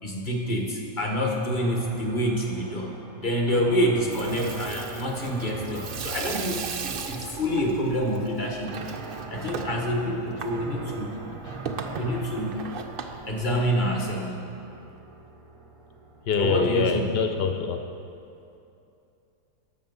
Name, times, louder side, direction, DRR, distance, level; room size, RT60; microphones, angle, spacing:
voice 1, 0.0-8.7 9.3-11.2 11.9-12.6 13.3-14.4 16.4-17.1, equal, 30° left, 1 dB, 1.3 m, -27 dB
sound 1, 1.6-17.5, right 3 dB, 35° right, 0.5 m, -42 dB
Water tap faucet / Sink (filling or washing), 3.9-14.1, right 6 dB, 85° right, 0.4 m, -37 dB
voice 2, 16.3-17.9, left 5 dB, 90° left, 5 dB, 0.5 m, -25 dB
12.5 x 6.9 x 5.4 m, 2.7 s
omnidirectional pair, 1.8 m